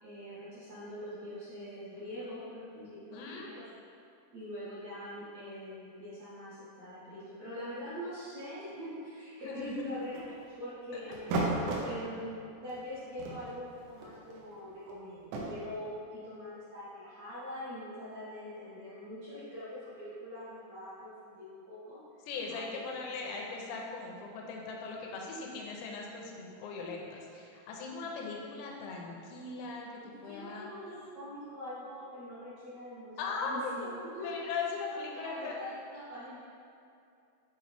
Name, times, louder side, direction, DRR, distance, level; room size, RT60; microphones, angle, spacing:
voice 1, 0.0-3.7 4.3-10.2 10.6-22.0 22.5-22.8 23.3-23.4 30.0-33.9 34.1-34.4 34.9-36.4, left 1 dB, 65° right, -13 dB, 1.6 m, -44 dB
voice 2, 3.1-3.5 9.4-9.8 22.3-30.7 33.2-35.6, left 4 dB, 85° left, -1 dB, 2.9 m, -39 dB
sound 1, 9.6-10.5 11.1-11.9 12.7-12.8 13.1-15.4, right 2 dB, 90° right, 3.1 m, -35 dB
7.6 x 4.3 x 3.4 m, 2.6 s
omnidirectional pair, 4.9 m